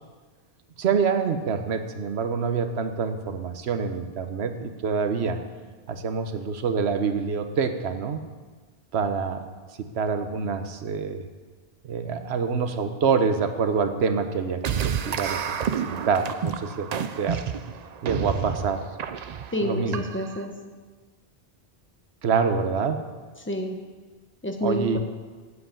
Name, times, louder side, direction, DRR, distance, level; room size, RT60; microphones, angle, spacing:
voice 1, 0.8-5.4 5.9-8.2 8.9-9.4 9.8-11.2 11.8-16.9 17.2-17.4 18.0-18.8 19.6-20.0 22.2-23.0 24.6-25.0, right 5 dB, 85° right, 8 dB, 1.1 m, -26 dB
sound 1, 14.6-20.4, right 8 dB, 55° right, 0.5 m, -30 dB
voice 2, 19.5-20.5 23.4-23.8 24.4-25.0, equal, 10° left, 3 dB, 0.9 m, -28 dB
8.2 x 7.8 x 6.8 m, 1.4 s
omnidirectional pair, 1.1 m